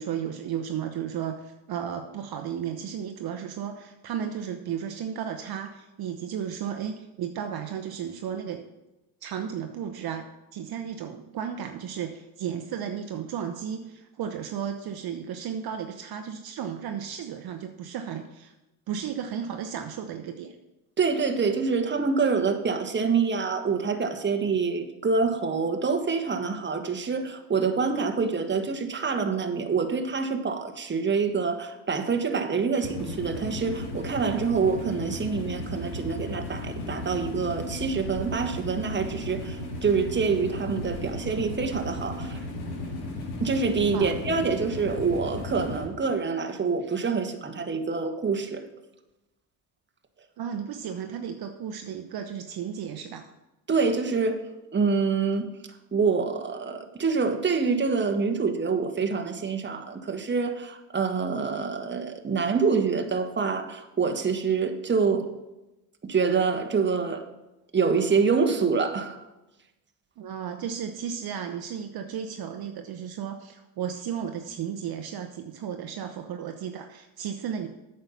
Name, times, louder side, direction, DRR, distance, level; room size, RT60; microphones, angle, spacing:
voice 1, 0.0-8.6 9.2-10.3 10.5-18.5 18.9-20.6 43.9-44.1 50.4-53.3 70.2-77.7, right 8 dB, 50° right, 5 dB, 0.9 m, -34 dB
voice 2, 21.0-39.6 39.8-42.4 43.4-48.6 53.7-54.4 54.7-55.5 55.9-65.3 66.0-67.2 67.7-69.2, right 5 dB, 20° right, 5 dB, 1.3 m, -26 dB
sound 1, 32.8-45.9, left 1 dB, 70° left, 2.3 m, -35 dB
8.9 x 6.6 x 5.6 m, 0.99 s
hypercardioid pair, 70°, 49 cm